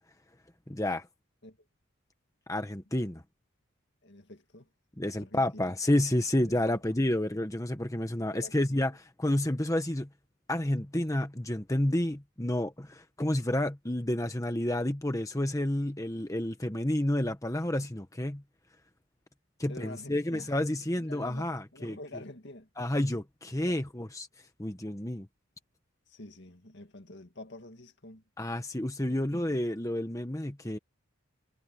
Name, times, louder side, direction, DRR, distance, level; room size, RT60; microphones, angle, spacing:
voice 1, 0.7-1.1 2.5-3.2 5.0-10.1 10.5-18.4 19.6-22.0 22.8-24.3 24.6-25.3 28.4-30.8, left 1 dB, 15° left, 1.1 m, -30 dB
voice 2, 4.0-4.7 5.0-5.7 6.4-7.0 8.3-8.8 19.7-20.5 21.0-22.7 23.6-23.8 26.1-28.2 29.1-29.6, left 2 dB, 55° left, 2.2 m, -48 dB
head